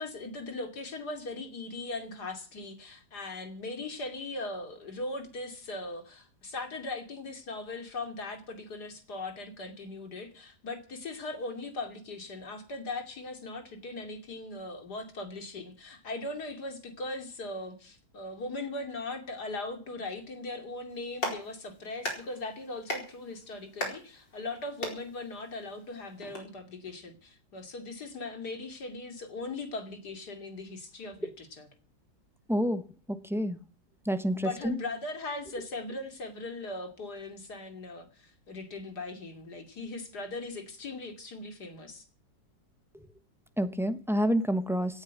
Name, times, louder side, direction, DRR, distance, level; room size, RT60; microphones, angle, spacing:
voice 1, 0.0-31.7 34.3-42.0, left 2 dB, 60° left, 3.2 m, -39 dB
Clapping, 20.9-26.4, left 1 dB, 80° left, 5.3 m, -40 dB
voice 2, 32.5-33.6 34.0-34.8 43.6-45.0, equal, 5° right, 0.5 m, -29 dB
17.5 x 8.9 x 8.3 m
omnidirectional pair, 2.0 m